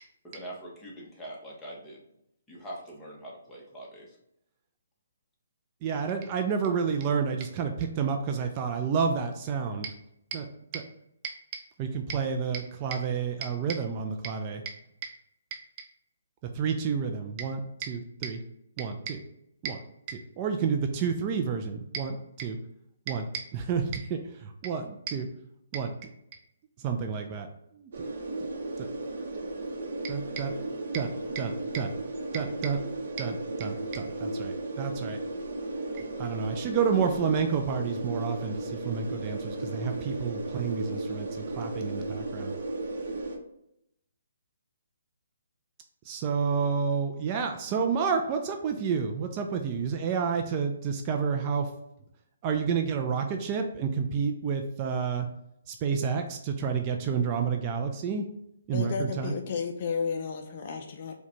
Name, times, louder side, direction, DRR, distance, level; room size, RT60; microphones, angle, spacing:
voice 1, 0.2-2.0 2.5-4.2, right 1 dB, 10° left, -5 dB, 1.0 m, -43 dB
voice 2, 5.8-9.9 10.3-10.5 10.7-10.8 11.2-11.3 11.8-14.7 15.0-15.1 16.6-18.4 18.8-19.2 19.6-19.8 20.1-22.6 23.1-24.2 24.6-25.3 25.7-25.9 26.8-27.5 30.0-30.5 30.9-31.1 31.3-31.9 32.3-32.8 33.2-35.2 36.2-41.3 41.6-42.5 46.1-51.6 52.4-55.3 55.7-58.2 58.7-59.3, right 6 dB, 30° right, 4 dB, 0.4 m, -30 dB
sound 1, 27.9-43.4, right 2 dB, 60° right, 0.7 m, -35 dB
voice 3, 58.7-61.1, left 6 dB, 45° left, 5 dB, 0.4 m, -32 dB
4.6 x 2.2 x 2.9 m, 0.80 s
figure-of-eight pair, 140°, 0 cm